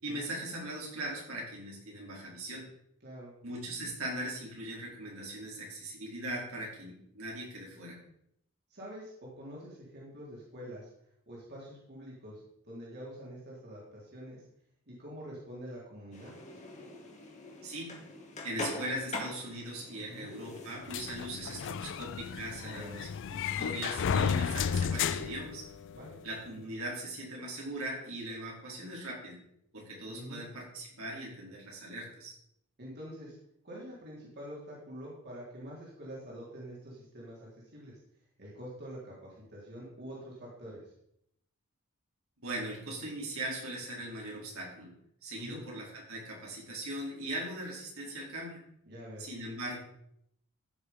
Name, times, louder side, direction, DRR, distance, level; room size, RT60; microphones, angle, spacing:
voice 1, 0.0-2.7 3.4-8.0 17.6-17.9 18.4-25.7 26.2-29.4 29.7-32.3 42.4-44.9 45.2-48.6 49.2-49.8, right 1 dB, 70° right, -3 dB, 4.5 m, -40 dB
voice 2, 3.0-3.4 8.7-10.9 11.3-14.4 14.9-16.3 20.1-20.3 22.6-23.0 25.9-26.2 30.1-30.4 32.8-33.4 33.6-37.9 38.4-40.9 45.3-45.6 48.9-49.3, equal, 50° right, -5 dB, 3.7 m, -46 dB
sound 1, 16.1-22.4, left 2 dB, 35° left, 2.3 m, -44 dB
sound 2, 20.9-26.2, left 7 dB, 60° left, 0.4 m, -33 dB
15.0 x 6.7 x 5.4 m, 0.75 s
head